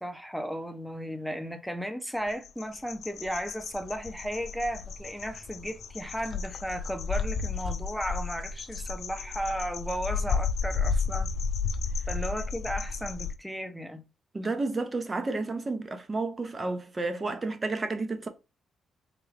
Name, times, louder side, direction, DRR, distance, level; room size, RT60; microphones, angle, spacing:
voice 1, 0.0-11.3 12.1-14.0, equal, ahead, 0.7 m, -35 dB
sound 1, 2.3-13.3, left 5 dB, 70° left, 0.4 m, -32 dB
voice 2, 14.3-18.3, right 3 dB, 35° right, 0.7 m, -31 dB
3.7 x 2.2 x 3.2 m
supercardioid pair, 60°, 0 cm